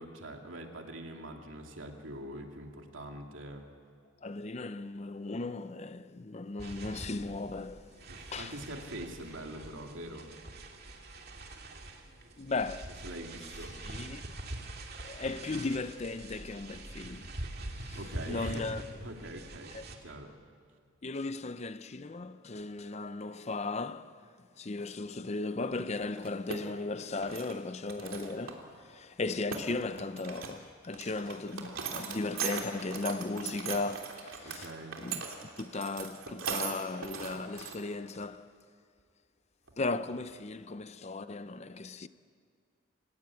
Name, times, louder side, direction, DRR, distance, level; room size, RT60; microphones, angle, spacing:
voice 1, 0.0-3.7 8.1-10.3 13.0-13.7 17.9-19.7 20.0-20.3 34.4-35.0, right 1 dB, 75° right, 2.6 m, -43 dB
voice 2, 4.2-7.9 8.3-8.6 12.4-12.9 13.8-14.2 15.0-17.3 17.8-18.0 18.2-18.8 19.7-19.8 21.0-24.1 24.6-34.7 35.0-35.3 35.6-38.5 39.8-42.1, left 3 dB, 35° left, 0.6 m, -36 dB
sound 1, 6.6-20.0, right 1 dB, 50° right, 2.3 m, -44 dB
sound 2, 26.2-26.6 27.0-27.5 27.9-28.6 28.9-29.0 29.3-30.6 30.9-37.8 38.2-38.3 39.7-39.8 40.1-40.3, right 6 dB, 90° right, 3.1 m, -39 dB
29.0 x 17.0 x 8.6 m
head